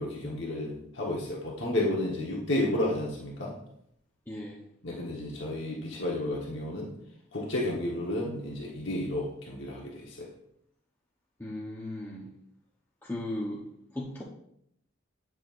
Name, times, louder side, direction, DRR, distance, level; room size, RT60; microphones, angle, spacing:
voice 1, 0.0-3.6 4.8-6.9 7.3-10.3, left 1 dB, 60° left, -3 dB, 1.2 m, -32 dB
voice 2, 4.3-4.6 11.4-12.3 13.0-13.6 13.9-14.2, left 1 dB, 10° left, -4 dB, 0.8 m, -36 dB
9.3 x 6.2 x 2.5 m, 0.73 s
head